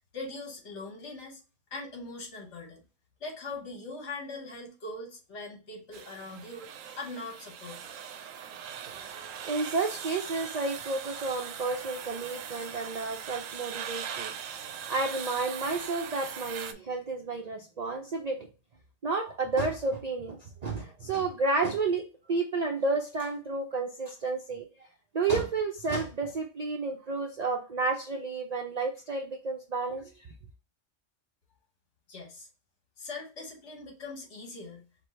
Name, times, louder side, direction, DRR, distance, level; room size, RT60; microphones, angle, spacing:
voice 1, 0.1-1.4 1.7-2.8 3.2-6.7 7.0-7.9 32.1-32.5 33.0-34.8, left 3 dB, 65° left, 2 dB, 1.5 m, -41 dB
sound 1, 5.9-16.7, right 8 dB, 85° right, 1.0 m, -40 dB
voice 2, 8.8-18.5 19.0-22.0 22.3-24.6 25.1-30.3, right 3 dB, 50° right, 3 dB, 0.5 m, -31 dB
4.7 x 2.2 x 4.2 m, 0.33 s
omnidirectional pair, 1.3 m